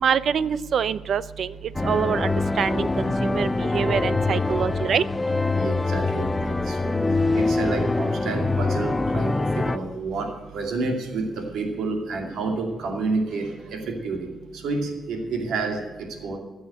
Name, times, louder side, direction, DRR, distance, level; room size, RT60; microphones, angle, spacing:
voice 1, 0.0-1.5 1.8-5.0, right 7 dB, 50° right, 17 dB, 0.4 m, -25 dB
sound 1, 1.7-9.8, left 3 dB, 15° left, 0.4 m, -24 dB
voice 2, 5.5-6.9 7.3-14.3 14.5-16.4, right 3 dB, 80° right, 2 dB, 2.5 m, -29 dB
15.0 x 6.2 x 8.7 m, 1.2 s
cardioid pair, 150°, 0 cm